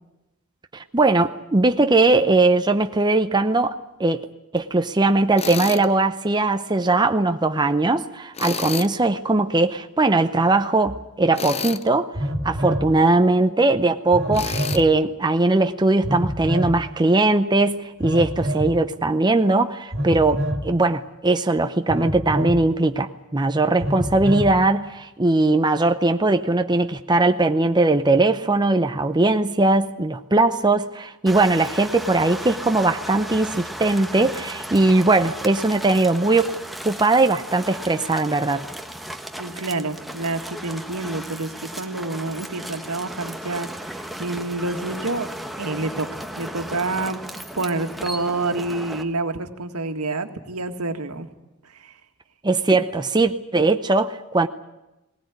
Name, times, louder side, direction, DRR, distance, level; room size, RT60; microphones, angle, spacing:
voice 1, 0.7-4.2 4.5-12.1 12.4-36.5 36.8-38.7 52.4-54.5, right 2 dB, 20° right, 8 dB, 0.7 m, -20 dB
Tools, 5.4-5.9 8.3-8.9 11.3-11.9 14.3-14.8, left 6 dB, 30° left, 0.8 m, -29 dB
Telephone, 10.9-11.0 12.1-12.9 14.1-14.8 16.0-16.8 18.0-18.7 19.9-20.7 21.9-22.6 23.8-24.5, equal, 50° right, 2.4 m, -26 dB
sound 1, 31.3-49.0, equal, ahead, 1.3 m, -35 dB
voice 2, 39.4-45.3 45.6-47.2 47.5-51.3 51.7-51.9 52.7-52.8, right 2 dB, 85° right, 6 dB, 1.9 m, -28 dB
20.0 x 19.0 x 9.5 m, 0.98 s
head